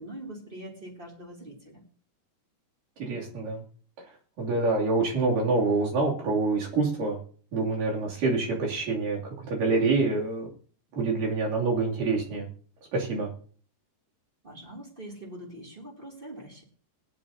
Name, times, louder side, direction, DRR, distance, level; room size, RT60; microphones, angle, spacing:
voice 1, 0.0-1.8 14.4-16.6, right 1 dB, 15° right, 0 dB, 2.7 m, -43 dB
voice 2, 3.0-3.6 4.4-7.2 7.5-10.5 10.9-12.5 12.9-13.3, right 3 dB, 80° right, -2 dB, 4.5 m, -26 dB
19.5 x 10.5 x 2.8 m, 0.43 s
omnidirectional pair, 3.8 m